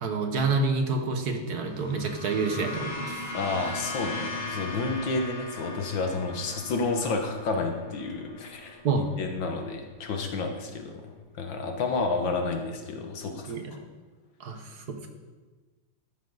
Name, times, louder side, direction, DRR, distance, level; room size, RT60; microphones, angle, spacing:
voice 1, 0.0-3.2 8.8-9.1 13.5-13.8 14.4-15.1, right 4 dB, 55° right, 5 dB, 1.7 m, -28 dB
sound 1, 1.6-10.1, left 2 dB, 30° left, 1.3 m, -39 dB
voice 2, 3.3-11.0 11.4-13.8, left 3 dB, 70° left, 4 dB, 1.8 m, -30 dB
13.5 x 10.0 x 4.0 m, 1.3 s
omnidirectional pair, 2.2 m